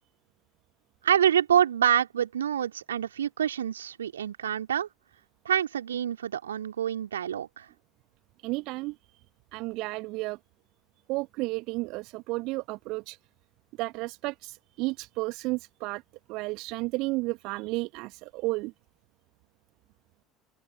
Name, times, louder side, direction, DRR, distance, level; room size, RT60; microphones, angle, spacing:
voice 1, 1.0-4.9 5.4-7.7, right 9 dB, 75° right, 3.1 m, -26 dB
voice 2, 8.4-9.0 9.5-10.4 11.1-13.2 13.8-16.0 16.3-18.7, right 23 dB, 55° right, 1.4 m, -32 dB
open air
figure-of-eight pair, 65°, 0 cm